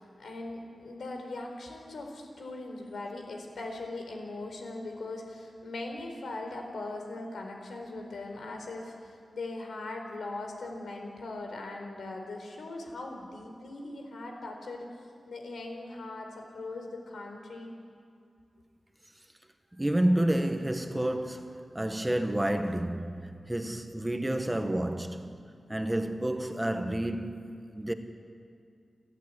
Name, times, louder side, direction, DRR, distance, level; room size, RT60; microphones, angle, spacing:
voice 1, 0.0-17.7, left 2 dB, 85° left, 4.3 m, -40 dB
voice 2, 19.8-25.4 25.7-27.9, right 1 dB, 10° right, 1.4 m, -30 dB
29.5 x 13.5 x 9.8 m
wide cardioid pair, 100°, 0 cm